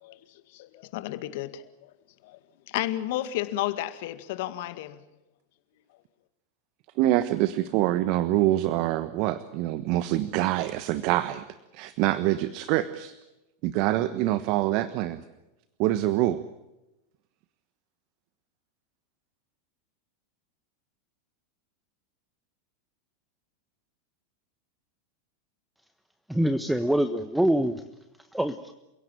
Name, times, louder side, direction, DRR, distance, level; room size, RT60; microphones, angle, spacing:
voice 1, 0.5-1.6 2.2-2.4 2.7-5.0, left 14 dB, 60° left, 2.0 m, -32 dB
voice 2, 7.0-11.4 11.7-13.1 13.6-15.2 15.8-16.4, right 15 dB, 55° right, 1.2 m, -25 dB
voice 3, 26.3-27.8 28.3-28.7, right 1 dB, 5° right, 1.2 m, -24 dB
29.5 x 17.0 x 9.0 m
hypercardioid pair, 90°, 0 cm